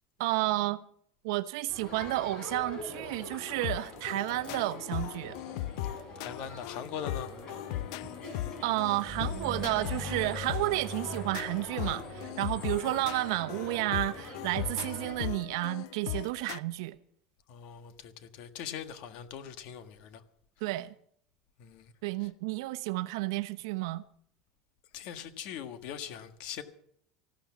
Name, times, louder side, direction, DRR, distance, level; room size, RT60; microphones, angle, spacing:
voice 1, 0.2-0.8 1.2-5.4 8.6-17.0 20.6-20.9 22.0-24.0, right 18 dB, 75° right, 0.9 m, -31 dB
Crowd, 1.7-15.1, left 1 dB, 35° left, 6.5 m, -44 dB
sound 1, 3.6-16.6, left 14 dB, 70° left, 0.5 m, -38 dB
voice 2, 6.2-7.3 17.5-20.2 21.6-21.9 24.9-26.6, left 8 dB, 50° left, 1.6 m, -41 dB
sound 2, 9.1-13.7, right 1 dB, ahead, 6.6 m, -43 dB
14.5 x 12.5 x 7.2 m
supercardioid pair, 160°, 2 cm